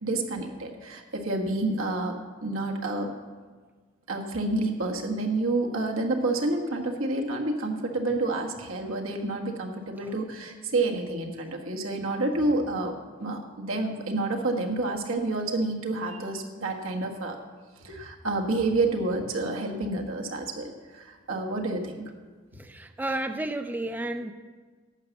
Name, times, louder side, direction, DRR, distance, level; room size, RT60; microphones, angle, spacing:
voice 1, 0.0-2.2 2.4-3.1 4.1-12.9 13.2-17.4 17.8-22.0, right 2 dB, 85° right, 1 dB, 1.5 m, -29 dB
voice 2, 22.5-24.3, right 1 dB, 10° right, 8 dB, 0.3 m, -32 dB
11.5 x 7.1 x 7.0 m, 1.5 s
head